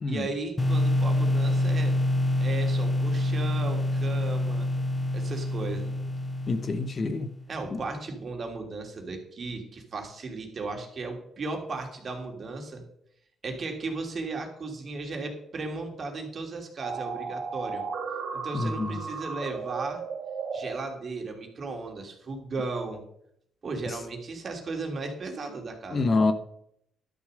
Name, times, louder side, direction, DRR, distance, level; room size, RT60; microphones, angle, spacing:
voice 1, 0.1-1.9 2.4-4.7 5.1-5.9 7.5-12.8 13.4-17.8 18.3-20.0 20.5-23.0 23.6-26.1, right 3 dB, 45° right, 2.9 m, -35 dB
sound 1, 0.6-7.4, left 1 dB, 20° left, 1.2 m, -26 dB
voice 2, 6.5-7.3 7.7-7.8 18.5-19.0 25.9-26.3, left 3 dB, 40° left, 1.0 m, -27 dB
sound 2, 16.8-20.7, right 5 dB, 70° right, 2.1 m, -34 dB
12.0 x 7.1 x 6.5 m
cardioid pair, 90°, 0 cm